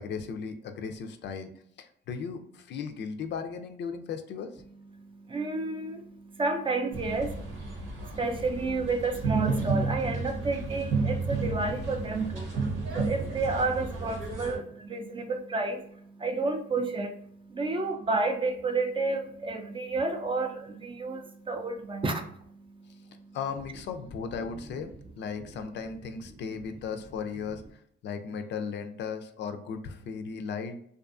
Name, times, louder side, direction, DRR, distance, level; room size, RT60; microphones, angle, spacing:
voice 1, 0.0-1.5 1.8-4.5 23.3-27.6 28.0-30.8, left 6 dB, 65° left, 7 dB, 0.4 m, -36 dB
voice 2, 5.0-23.4, right 3 dB, 25° right, 5 dB, 0.4 m, -31 dB
sound 1, 6.9-14.6, right 3 dB, 85° right, 1.0 m, -32 dB
2.5 x 2.4 x 2.4 m, 0.67 s
cardioid pair, 90°, 20 cm